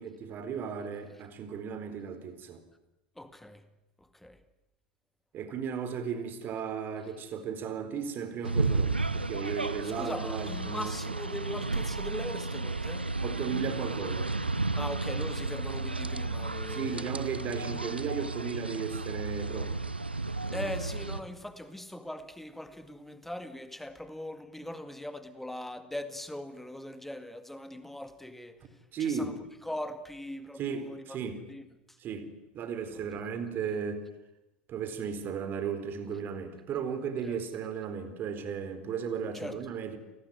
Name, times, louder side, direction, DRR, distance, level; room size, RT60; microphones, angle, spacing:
voice 1, 0.0-2.6 5.3-10.9 13.2-14.3 16.7-19.7 20.5-20.7 28.9-29.4 30.6-31.4 32.0-32.3 32.5-34.1 34.7-40.0, right 6 dB, 40° right, 4.2 m, -35 dB
voice 2, 3.2-3.6 4.0-4.4 9.8-13.1 14.8-17.1 20.5-28.6 29.0-31.2 31.5-31.7 37.2-37.4 39.3-39.6, left 1 dB, 5° left, 2.0 m, -40 dB
sound 1, 8.4-21.2, right 3 dB, 85° right, 1.0 m, -33 dB
29.0 x 19.0 x 9.6 m
figure-of-eight pair, 75°, 5 cm